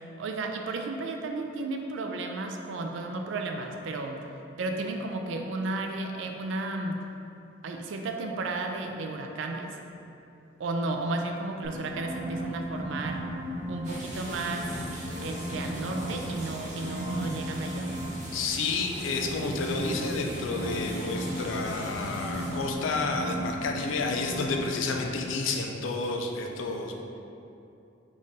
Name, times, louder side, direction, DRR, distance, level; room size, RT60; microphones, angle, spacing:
voice 1, 0.2-4.2 4.6-7.0 7.6-9.8 10.6-13.2 13.7-14.8 15.2-17.9, right 2 dB, 75° right, 3 dB, 0.4 m, -33 dB
sound 1, 11.6-13.9 14.2-16.3 16.6-18.1 19.0-24.6 24.9-25.0, equal, 70° left, 1.1 m, -36 dB
sound 2, 13.8-22.7, right 1 dB, 40° right, 0.9 m, -41 dB
voice 2, 18.3-27.0, left 3 dB, 90° left, 2 dB, 0.4 m, -30 dB
3.6 x 2.4 x 4.0 m, 2.7 s
head